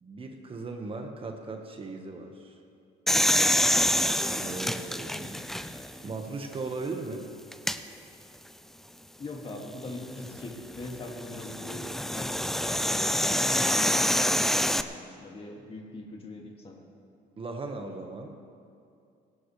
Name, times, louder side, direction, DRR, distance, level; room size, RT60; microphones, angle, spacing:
voice 1, 0.0-2.6 4.3-5.4 6.0-7.3 17.4-18.4, right 3 dB, 30° right, 3 dB, 1.5 m, -37 dB
sound 1, 3.1-6.0 6.5-6.6 7.5-7.8 9.9-14.8, equal, ahead, 0.5 m, -26 dB
voice 2, 9.2-16.9, left 2 dB, 35° left, 0 dB, 2.3 m, -42 dB
18.5 x 17.5 x 3.3 m, 2.4 s
cardioid pair, 110°, 17 cm